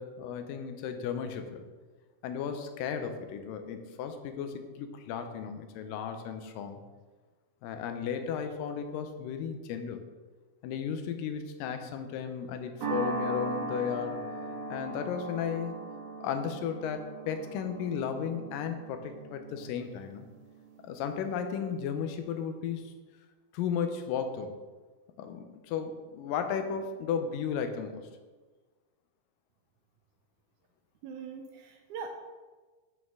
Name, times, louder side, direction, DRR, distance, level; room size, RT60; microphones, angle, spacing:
voice 1, 0.0-1.6 2.2-6.8 7.6-10.0 10.6-14.2 14.7-15.8 16.2-20.3 20.8-22.9 23.5-24.6 25.2-28.0, left 7 dB, 85° left, 7 dB, 2.3 m, -34 dB
sound 1, 12.8-21.3, right 2 dB, 60° right, 2.2 m, -39 dB
voice 2, 31.0-32.1, right 6 dB, 80° right, 4 dB, 1.8 m, -41 dB
8.9 x 6.2 x 3.6 m, 1.3 s
omnidirectional pair, 3.9 m